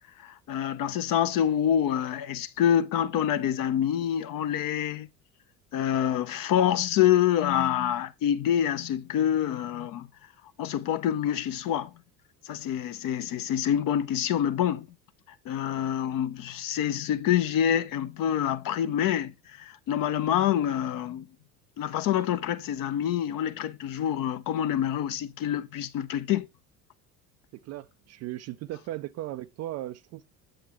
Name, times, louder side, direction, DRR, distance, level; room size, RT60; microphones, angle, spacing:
voice 1, 0.2-5.1 5.7-10.1 10.6-11.9 12.5-14.9 15.5-21.3 21.8-26.5, left 10 dB, 45° left, 0.7 m, -26 dB
voice 2, 27.5-30.2, right 15 dB, 35° right, 0.4 m, -37 dB
7.7 x 7.5 x 3.0 m
figure-of-eight pair, 65°, 49 cm